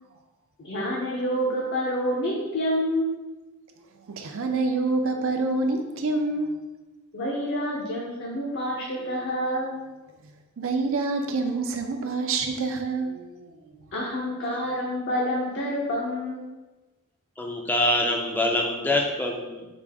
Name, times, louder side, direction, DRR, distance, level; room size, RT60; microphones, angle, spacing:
voice 1, 0.6-3.1 7.1-9.8 13.9-16.4, equal, 50° left, -3 dB, 0.6 m, -28 dB
voice 2, 4.1-6.5 9.0-9.2 10.2-13.6, right 3 dB, 60° right, 5 dB, 0.5 m, -27 dB
voice 3, 17.4-19.7, left 1 dB, 10° left, 1 dB, 0.4 m, -25 dB
5.0 x 2.5 x 3.5 m, 1.2 s
head